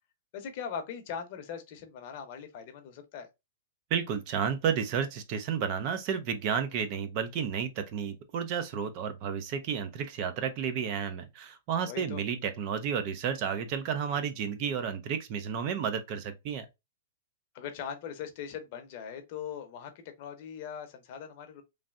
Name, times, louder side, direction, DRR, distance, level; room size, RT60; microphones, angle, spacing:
voice 1, 0.3-3.3 11.8-12.2 17.5-21.6, left 7 dB, 40° left, 0.7 m, -40 dB
voice 2, 3.9-16.7, right 7 dB, 35° right, 0.4 m, -32 dB
3.2 x 2.5 x 2.4 m
hypercardioid pair, 160°, 0 cm